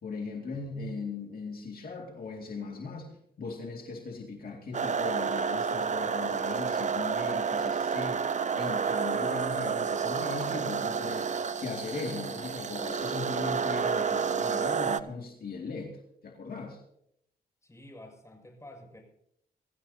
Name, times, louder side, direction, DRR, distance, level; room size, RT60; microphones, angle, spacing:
voice 1, 0.0-15.9 16.2-16.8, left 4 dB, 60° left, 0 dB, 2.3 m, -38 dB
sound 1, 4.7-15.0, right 6 dB, 45° right, 0.7 m, -30 dB
voice 2, 17.6-19.0, left 1 dB, 15° left, 2 dB, 6.2 m, -49 dB
23.5 x 15.0 x 2.8 m, 0.76 s
cardioid pair, 80°, 17 cm